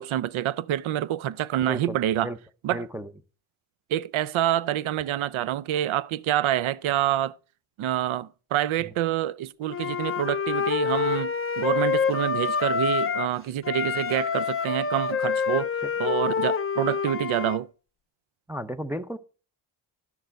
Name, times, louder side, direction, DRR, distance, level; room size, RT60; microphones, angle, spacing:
voice 1, 0.0-2.3 2.6-2.9 3.9-7.4 7.8-15.7 16.0-17.7, right 12 dB, 80° right, 0.6 m, -27 dB
voice 2, 1.6-2.0 2.2-2.4 2.7-3.1 15.8-15.9 18.5-19.2, right 1 dB, 5° right, 0.5 m, -33 dB
Wind instrument woodwind instrument, 9.7-13.3 13.6-17.6, left 6 dB, 25° left, 0.7 m, -27 dB
11.0 x 6.7 x 4.5 m
cardioid pair, 100°, 48 cm